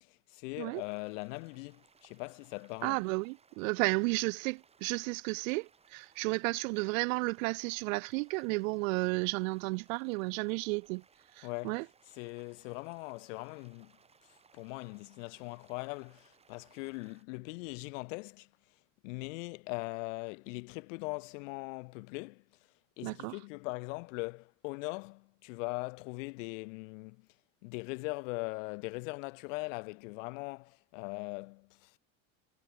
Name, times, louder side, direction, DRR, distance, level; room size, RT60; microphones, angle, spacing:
voice 1, 0.0-3.0 11.4-13.9 14.5-18.5 19.0-22.4 23.0-27.3 27.6-32.0, left 28 dB, 65° left, 2.5 m, -40 dB
sound 1, 0.7-17.2, right 5 dB, 15° right, 5.3 m, -66 dB
voice 2, 2.8-11.0 11.3-11.8 23.0-23.4, right 28 dB, 75° right, 0.5 m, -33 dB
cardioid pair, 165°, 40 cm